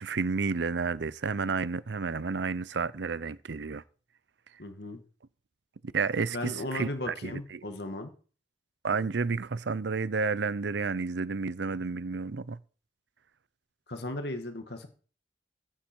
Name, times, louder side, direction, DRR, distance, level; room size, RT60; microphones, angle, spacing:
voice 1, 0.0-3.8 5.9-7.6 8.8-12.6, right 4 dB, 75° right, 0.6 m, -31 dB
voice 2, 4.6-5.0 6.3-8.1 13.9-14.9, left 1 dB, 65° left, 2.0 m, -36 dB
15.0 x 8.5 x 4.6 m
head